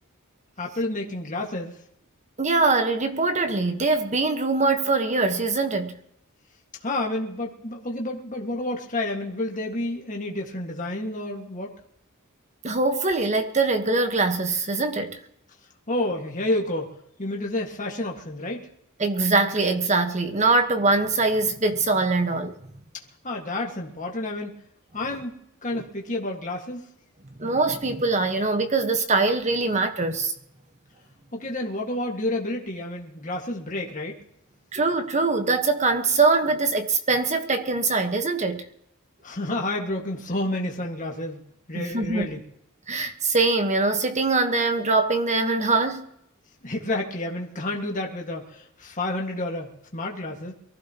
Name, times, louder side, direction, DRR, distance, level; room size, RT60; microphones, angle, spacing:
voice 1, 0.6-1.8 6.8-11.8 15.9-18.7 23.2-24.6 24.9-25.4 25.6-26.8 31.3-34.2 39.2-41.4 41.7-42.4 46.6-50.5, left 1 dB, 35° left, 1.9 m, -30 dB
voice 2, 2.4-6.0 12.6-15.2 19.0-22.6 25.7-25.8 27.4-30.3 34.7-38.7 41.7-42.3 42.9-46.1, right 3 dB, 30° right, 1.4 m, -23 dB
23.0 x 15.0 x 3.0 m
head